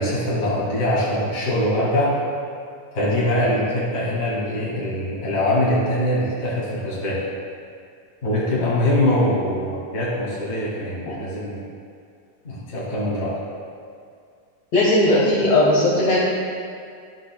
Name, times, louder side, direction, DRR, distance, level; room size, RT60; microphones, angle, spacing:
voice 1, 0.0-2.1 2.9-7.2 8.2-11.6 12.4-13.4, left 1 dB, 30° left, -8 dB, 1.5 m, -23 dB
voice 2, 14.7-16.2, left 1 dB, 60° left, -6 dB, 2.3 m, -17 dB
12.0 x 11.5 x 2.2 m, 2.3 s
omnidirectional pair, 3.7 m